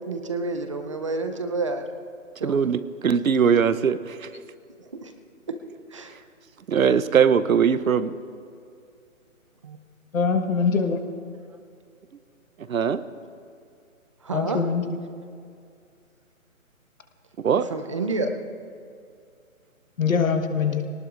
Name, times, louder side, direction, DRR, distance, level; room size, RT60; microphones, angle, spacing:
voice 1, 0.0-1.8 2.4-2.6 4.8-5.1 5.5-5.6 5.9-6.1 9.6-9.8 14.2-14.6 17.7-18.4, right 3 dB, 25° right, 6 dB, 0.6 m, -29 dB
voice 2, 2.4-4.3 6.7-8.1 12.7-13.0 17.4-17.6, right 7 dB, 75° right, 14 dB, 0.9 m, -21 dB
voice 3, 10.1-11.0 14.3-15.0 20.0-20.8, left 5 dB, 70° left, 6 dB, 1.5 m, -23 dB
23.5 x 18.5 x 2.6 m, 2.4 s
hypercardioid pair, 155°, 42 cm